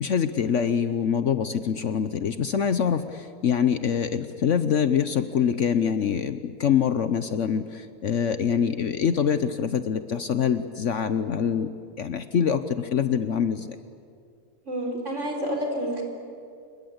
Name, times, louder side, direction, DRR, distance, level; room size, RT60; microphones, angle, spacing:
voice 1, 0.0-11.7 12.0-13.7, left 7 dB, 60° left, 11 dB, 1.1 m, -25 dB
voice 2, 14.6-16.0, equal, 50° right, 1 dB, 4.8 m, -29 dB
28.0 x 22.0 x 8.0 m, 2.3 s
omnidirectional pair, 1.6 m